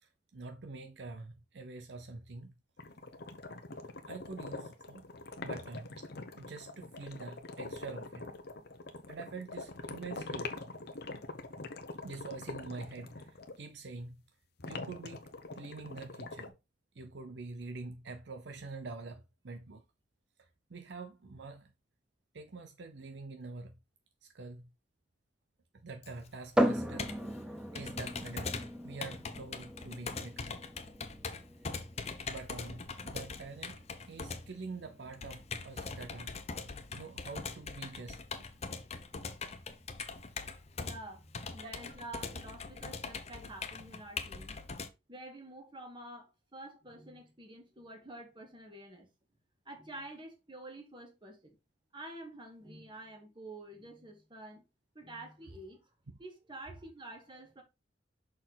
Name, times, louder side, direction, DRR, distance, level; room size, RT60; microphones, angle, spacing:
voice 1, 0.0-2.5 4.1-5.1 5.4-8.3 9.1-10.6 12.0-14.2 14.7-16.5 16.9-19.8 20.4-21.7 22.3-23.8 24.2-24.7 25.7-30.6 32.3-36.4 36.9-38.5 41.6-41.8, right 3 dB, 70° right, 0.6 m, -46 dB
sound 1, 2.8-13.6 14.6-16.5, left 3 dB, 60° left, 0.9 m, -44 dB
Computer keyboard, 26.0-44.9, left 4 dB, 35° left, 0.7 m, -42 dB
sound 2, 26.6-40.1, equal, 5° right, 0.7 m, -39 dB
voice 2, 40.8-44.6 45.1-49.1 49.7-51.6 51.9-54.6 54.9-55.9 56.2-57.6, right 1 dB, 25° right, 1.9 m, -48 dB
6.3 x 4.3 x 3.9 m
head